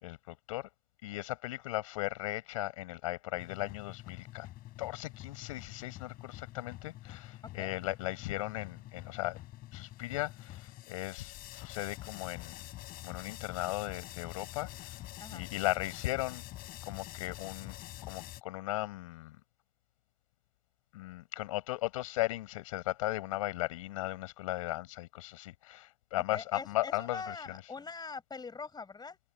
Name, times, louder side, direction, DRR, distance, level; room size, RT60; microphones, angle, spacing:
voice 1, 0.0-0.7 1.0-4.5 4.8-9.4 9.7-12.6 13.0-15.0 15.3-16.4 16.8-17.8 18.0-19.4 20.9-27.6, left 17 dB, 75° left, 5.8 m, -37 dB
sound 1, 3.3-18.4, left 16 dB, 55° left, 5.8 m, -47 dB
voice 2, 26.3-29.2, left 4 dB, 25° left, 5.8 m, -43 dB
hypercardioid pair, 70°, 17 cm